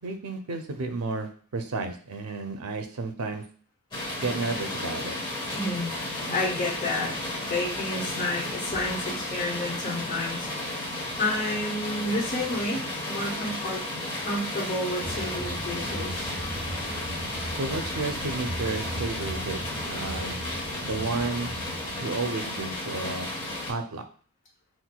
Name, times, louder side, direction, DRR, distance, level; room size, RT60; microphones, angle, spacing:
voice 1, 0.0-3.4 4.2-5.2 17.5-20.4 20.8-21.5 22.0-23.3 23.7-24.0, right 3 dB, 90° right, 6 dB, 0.5 m, -32 dB
sound 1, 3.9-23.7, left 1 dB, 20° left, 1.2 m, -33 dB
voice 2, 5.5-6.0 6.3-7.1 7.5-10.7 11.2-13.8 14.2-16.4, left 1 dB, 35° left, -3 dB, 1.0 m, -30 dB
sound 2, 15.0-22.0, right 1 dB, 25° right, 0.7 m, -38 dB
5.9 x 2.2 x 2.2 m, 0.44 s
head